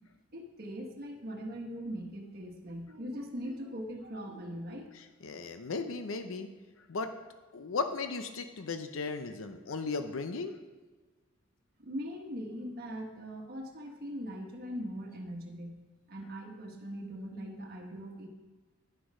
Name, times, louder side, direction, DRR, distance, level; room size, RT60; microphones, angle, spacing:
voice 1, 0.3-4.9 11.8-15.7 16.1-18.3, equal, 50° right, 1 dB, 1.4 m, -41 dB
voice 2, 4.9-6.5 6.9-7.1 7.5-10.6, left 4 dB, 85° left, 8 dB, 0.6 m, -36 dB
10.0 x 6.3 x 4.8 m, 1.3 s
head